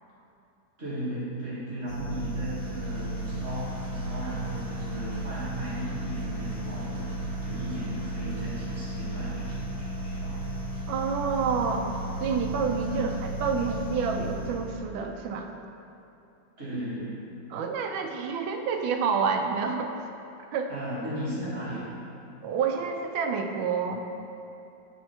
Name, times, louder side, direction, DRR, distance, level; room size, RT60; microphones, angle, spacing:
voice 1, 0.8-7.2 7.4-10.4 12.8-13.1 16.6-17.2 20.7-21.9, right 1 dB, 35° right, -9 dB, 2.0 m, -36 dB
sound 1, 1.9-14.8, right 1 dB, 55° right, 2.1 m, -34 dB
voice 2, 10.9-11.9 12.2-15.5 17.5-19.9 20.5-20.7 22.4-24.0, right 5 dB, 90° right, 4 dB, 1.4 m, -28 dB
8.3 x 4.5 x 4.3 m, 2.7 s
omnidirectional pair, 2.1 m